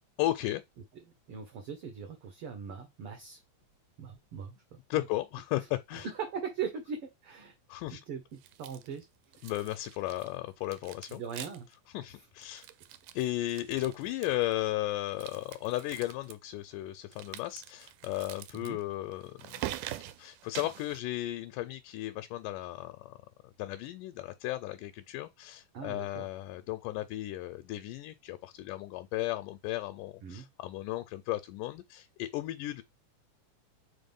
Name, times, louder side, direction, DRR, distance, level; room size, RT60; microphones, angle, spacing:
voice 1, 0.2-0.6 4.9-6.1 7.7-8.0 9.4-11.2 11.9-12.7 13.1-19.7 20.2-23.1 23.6-32.8, left 16 dB, 85° left, 2.2 m, -35 dB
voice 2, 1.3-3.4 4.0-4.8 5.9-7.6 7.9-9.1 9.4-9.5 11.1-11.7 18.5-18.8 25.7-26.3 30.2-30.5, right 6 dB, 60° right, 1.6 m, -40 dB
sound 1, 8.4-9.0 9.3-10.4 10.6-11.8 12.0-12.1 12.4-14.6 15.1-16.3 17.1-21.0, right 13 dB, 90° right, 2.1 m, -44 dB
4.7 x 3.9 x 5.3 m
omnidirectional pair, 3.7 m